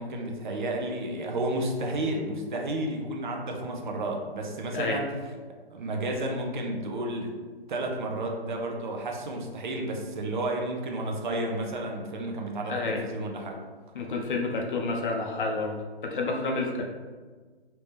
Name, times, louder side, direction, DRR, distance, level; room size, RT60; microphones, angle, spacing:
voice 1, 0.0-5.1 5.7-7.4 7.7-13.5, right 1 dB, 50° right, 1 dB, 0.6 m, -31 dB
voice 2, 12.7-13.0 13.9-15.8 16.0-16.9, left 3 dB, 55° left, 2 dB, 0.7 m, -29 dB
3.2 x 2.9 x 3.2 m, 1.4 s
hypercardioid pair, 145°, 31 cm